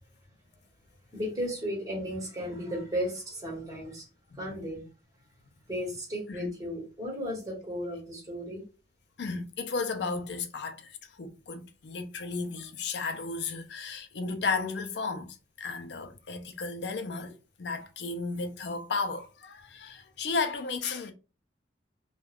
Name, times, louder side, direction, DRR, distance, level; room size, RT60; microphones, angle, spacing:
voice 1, 1.1-4.0 4.4-4.8 5.7-8.6, equal, 20° right, 1.3 m, -34 dB
voice 2, 4.3-4.7 6.3-6.5 9.2-21.1, left 4 dB, 65° left, 0.5 m, -34 dB
2.3 x 2.3 x 3.3 m
head